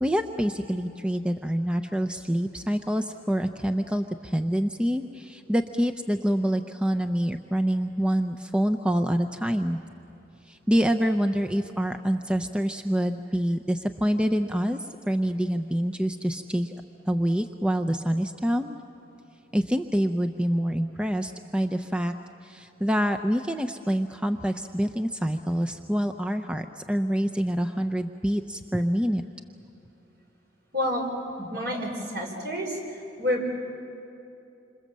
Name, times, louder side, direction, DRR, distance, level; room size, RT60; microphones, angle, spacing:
voice 1, 0.0-9.8 10.5-14.8 15.1-16.7 17.1-18.8 19.5-22.1 22.4-29.2, equal, 5° right, 6 dB, 0.6 m, -26 dB
voice 2, 30.7-31.0 31.4-32.8 33.2-33.5, equal, 60° right, 1 dB, 5.1 m, -28 dB
27.5 x 26.5 x 7.5 m, 2.7 s
head